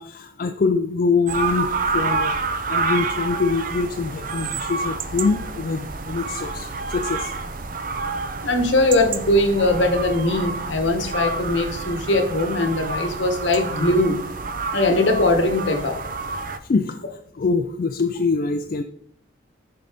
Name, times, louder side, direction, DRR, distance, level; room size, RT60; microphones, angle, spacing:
voice 1, 0.0-2.4 2.7-7.3 16.6-18.8, left 4 dB, 45° left, 6 dB, 0.3 m, -24 dB
sound 1, 1.3-16.6, right 4 dB, 45° right, 0.5 m, -28 dB
voice 2, 8.4-14.2 14.7-16.0, left 2 dB, 70° left, 5 dB, 1.2 m, -20 dB
10.5 x 3.8 x 3.5 m, 0.66 s
head